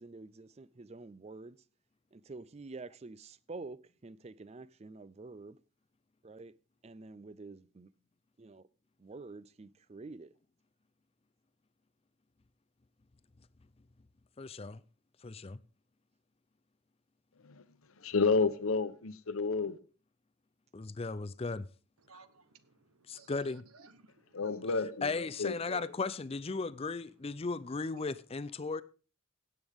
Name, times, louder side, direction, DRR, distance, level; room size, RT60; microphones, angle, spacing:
voice 1, 0.0-1.6 2.1-5.6 6.2-6.6 6.8-7.9 8.4-8.7 9.0-10.3, right 3 dB, 30° right, 0.4 m, -48 dB
voice 2, 14.4-14.8 15.2-15.6 20.7-21.7 23.1-23.7 25.0-28.8, left 4 dB, 25° left, 0.4 m, -36 dB
voice 3, 18.0-19.8 24.3-26.0, left 4 dB, 75° left, 0.9 m, -31 dB
voice 4, 22.0-23.3 23.7-24.4, right 4 dB, 90° right, 1.1 m, -60 dB
17.0 x 8.0 x 3.6 m
head